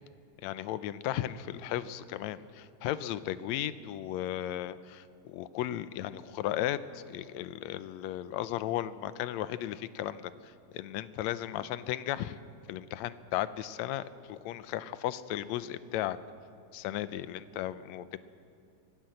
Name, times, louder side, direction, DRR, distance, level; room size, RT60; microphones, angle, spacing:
voice 1, 0.4-12.4 12.7-16.2 16.7-18.2, left 12 dB, 80° left, 15 dB, 1.9 m, -35 dB
24.5 x 18.0 x 7.8 m, 2.4 s
omnidirectional pair, 3.3 m